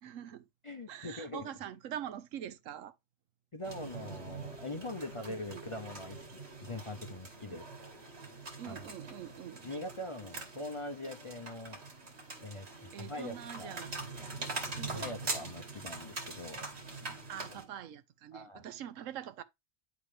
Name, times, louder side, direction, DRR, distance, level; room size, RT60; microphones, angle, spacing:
voice 1, 0.0-0.4 0.9-3.0 5.2-5.6 7.5-7.6 8.6-9.7 12.9-14.1 14.8-15.1 17.3-19.4, right 10 dB, 80° right, 1.0 m, -44 dB
voice 2, 0.6-1.5 3.5-6.2 6.6-7.7 8.7-8.8 9.6-11.8 12.4-13.8 14.9-16.7 18.3-18.6, left 1 dB, 35° left, 0.5 m, -42 dB
sound 1, 3.6-17.6, right 3 dB, 55° right, 2.0 m, -43 dB
10.0 x 3.7 x 3.3 m
omnidirectional pair, 1.3 m